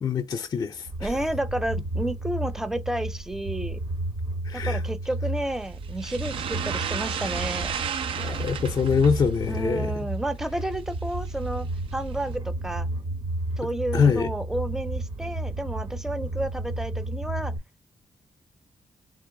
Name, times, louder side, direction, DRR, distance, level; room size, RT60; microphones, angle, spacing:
voice 1, 0.0-1.1 4.4-4.8 8.2-10.0 13.9-14.3, left 6 dB, 45° left, 0.4 m, -24 dB
sound 1, 0.9-17.6, right 2 dB, 60° right, 1.0 m, -32 dB
voice 2, 1.0-3.8 4.5-7.7 9.5-11.7 11.9-12.9 13.6-17.5, right 1 dB, 5° right, 0.5 m, -31 dB
sound 2, 5.4-12.4, right 7 dB, 80° right, 0.5 m, -35 dB
3.8 x 2.5 x 3.6 m
cardioid pair, 100°, 9 cm